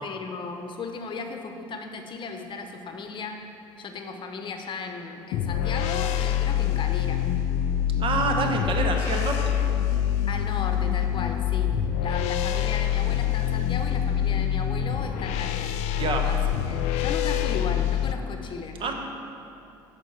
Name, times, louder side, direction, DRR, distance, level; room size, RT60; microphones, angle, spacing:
voice 1, 0.0-3.4 3.8-7.3 8.4-8.7 10.3-11.7 12.0-15.7 16.2-18.9, left 4 dB, 45° left, 5 dB, 0.8 m, -36 dB
sound 1, 5.3-18.1, left 10 dB, 65° left, 0.4 m, -25 dB
voice 2, 8.0-9.5 15.9-16.3 18.8-18.9, right 4 dB, 45° right, 3 dB, 1.0 m, -26 dB
8.3 x 5.2 x 4.6 m, 2.8 s
hypercardioid pair, 65°, 12 cm